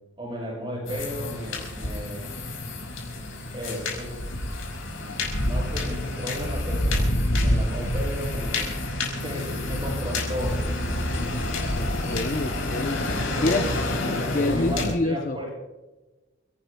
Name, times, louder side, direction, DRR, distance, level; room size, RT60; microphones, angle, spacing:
voice 1, 0.2-2.3 3.5-4.2 5.0-8.8 9.2-10.7 13.4-13.7 14.4-15.5, equal, 25° right, -2 dB, 7.3 m, -34 dB
sound 1, 0.9-14.9, left 1 dB, 85° left, 5.6 m, -28 dB
voice 2, 11.8-13.0 13.4-13.7 14.3-15.4, left 2 dB, 40° left, 7 dB, 0.7 m, -27 dB
29.0 x 18.0 x 2.3 m, 1.1 s
head